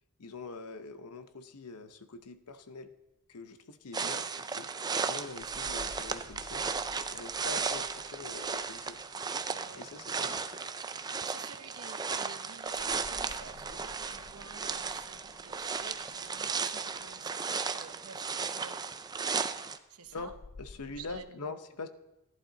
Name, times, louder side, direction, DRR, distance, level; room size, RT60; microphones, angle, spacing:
voice 1, 0.2-2.9 3.3-4.7 5.0-6.7 7.1-9.0 9.8-10.7 20.1-21.9, left 3 dB, 85° left, 10 dB, 0.8 m, -44 dB
sound 1, 3.9-19.8, right 5 dB, 20° right, 0.4 m, -35 dB
sound 2, 5.3-10.0 12.7-17.7 20.0-21.2, left 3 dB, 45° left, 0.5 m, -54 dB
voice 2, 9.5-9.8 11.2-18.8 19.9-20.3 20.9-21.5, right 5 dB, 70° right, 9 dB, 0.9 m, -51 dB
14.5 x 11.0 x 3.9 m, 0.96 s
head